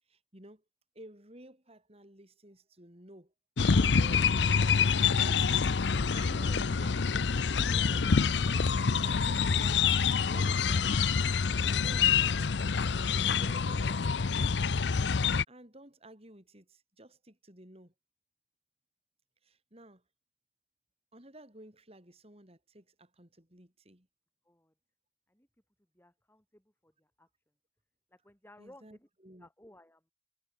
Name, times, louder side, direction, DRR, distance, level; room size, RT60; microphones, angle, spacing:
voice 1, 0.1-0.6 0.9-3.3 3.7-4.8 5.1-5.5 6.1-7.1 7.6-8.1 9.0-9.9 10.2-11.1 11.6-12.5 12.9-14.2 15.5-17.9 19.4-20.0 21.1-24.1 28.6-29.5, right 1 dB, 35° right, 5.2 m, -52 dB
sound 1, 3.6-15.4, left 5 dB, 70° left, 0.6 m, -27 dB
voice 2, 25.9-27.3 28.1-29.1 29.4-30.1, left 1 dB, 10° left, 3.1 m, -58 dB
head